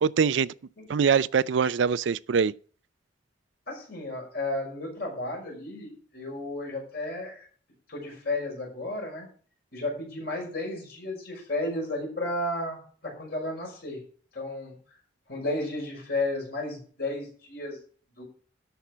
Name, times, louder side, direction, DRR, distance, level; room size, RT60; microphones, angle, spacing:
voice 1, 0.0-0.5 0.9-2.5, right 6 dB, 85° right, 0.4 m, -23 dB
voice 2, 3.7-7.5 7.9-9.3 9.7-14.0 14.3-14.8 15.3-17.8 18.2-18.3, left 2 dB, 60° left, 5.7 m, -33 dB
12.5 x 5.8 x 6.1 m
head